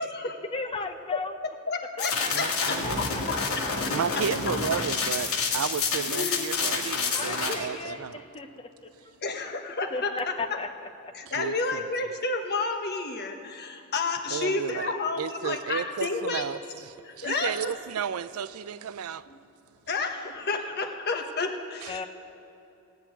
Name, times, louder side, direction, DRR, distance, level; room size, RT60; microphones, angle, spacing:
voice 1, 0.0-0.4 1.1-3.3 6.1-6.7 9.2-10.6 11.1-16.4 17.0-17.7 19.3-19.4 19.9-22.1, left 3 dB, 50° left, 1.2 m, -31 dB
voice 2, 0.5-1.3 2.0-3.4 7.1-8.7 9.9-10.7 21.9-22.1, left 3 dB, 25° left, 0.7 m, -35 dB
sound 1, 2.0-7.5, left 4 dB, 80° left, 1.8 m, -28 dB
voice 3, 2.3-3.0 3.9-8.2 11.4-11.8 14.3-19.2 21.8-21.9, right 7 dB, 75° right, 0.4 m, -33 dB
16.0 x 6.0 x 9.0 m
head